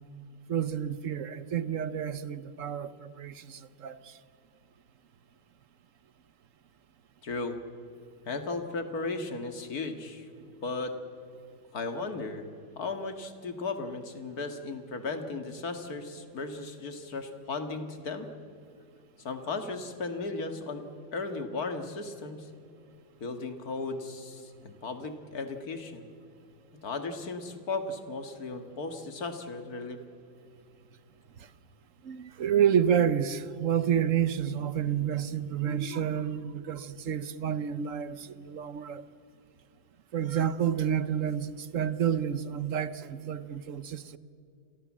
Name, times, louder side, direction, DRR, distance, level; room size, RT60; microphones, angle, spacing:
voice 1, 0.5-4.1 32.0-39.0 40.1-44.2, right 9 dB, 55° right, 1.1 m, -29 dB
voice 2, 7.2-7.6 8.2-10.3 10.6-10.9 11.7-12.5 12.8-18.3 19.2-20.8 21.1-22.5 23.2-26.1 26.8-30.0, left 3 dB, 60° left, 2.4 m, -36 dB
29.5 x 22.5 x 7.4 m
omnidirectional pair, 1.8 m